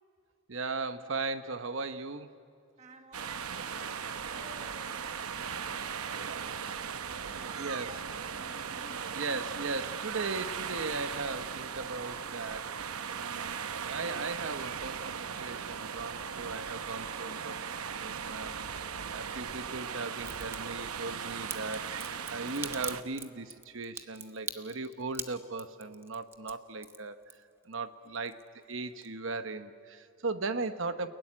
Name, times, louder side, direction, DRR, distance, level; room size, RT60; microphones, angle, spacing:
voice 1, 0.5-2.3 6.1-6.4 7.6-8.0 9.1-12.7 13.1-17.7 18.0-21.9 22.3-27.2 27.6-28.4 28.7-31.1, right 3 dB, 65° right, 10 dB, 1.0 m, -38 dB
voice 2, 2.8-5.0 6.0-9.2, right 1 dB, 30° right, 5 dB, 1.4 m, -54 dB
sound 1, 3.1-23.0, right 7 dB, 90° right, 0.8 m, -38 dB
Crack, 20.2-20.6 21.5-27.7 28.1-28.7 29.0-29.1, right 4 dB, 10° right, 0.7 m, -41 dB
29.0 x 16.5 x 9.9 m, 2.5 s
head